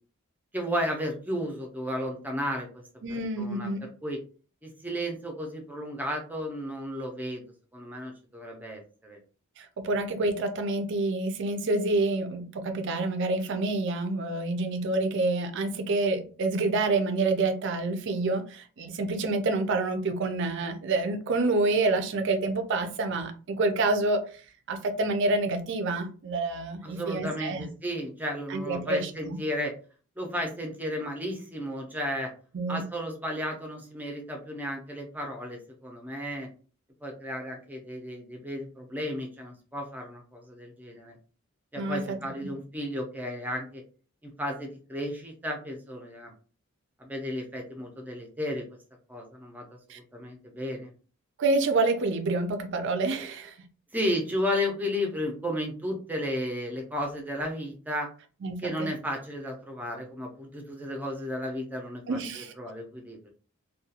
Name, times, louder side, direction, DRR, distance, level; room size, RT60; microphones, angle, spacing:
voice 1, 0.5-2.8 3.4-4.2 4.6-7.4 7.7-9.2 26.8-29.7 30.2-32.3 32.7-36.5 37.0-41.2 41.7-43.8 44.2-46.3 47.0-48.8 49.1-50.9 53.9-58.1 58.6-63.3, equal, 10° right, 0.5 m, -33 dB
voice 2, 3.0-3.9 9.6-24.2 24.7-27.6 28.5-29.4 32.5-32.8 41.8-42.2 42.4-42.5 49.9-50.0 51.4-53.5 58.4-58.9 62.1-62.5, right 2 dB, 55° right, 0.4 m, -28 dB
2.4 x 2.2 x 2.7 m
head